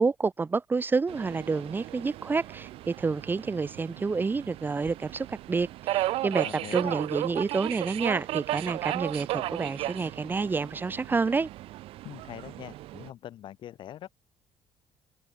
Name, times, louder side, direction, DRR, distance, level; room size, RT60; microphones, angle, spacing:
voice 1, 0.0-6.5 6.7-11.5, right 4 dB, 20° right, 0.7 m, -29 dB
Subway metro underground, 1.1-13.1, right 16 dB, 80° right, 2.6 m, -35 dB
voice 2, 6.4-7.0 12.0-14.1, left 11 dB, 60° left, 1.5 m, -43 dB
cardioid pair, 125°, 10 cm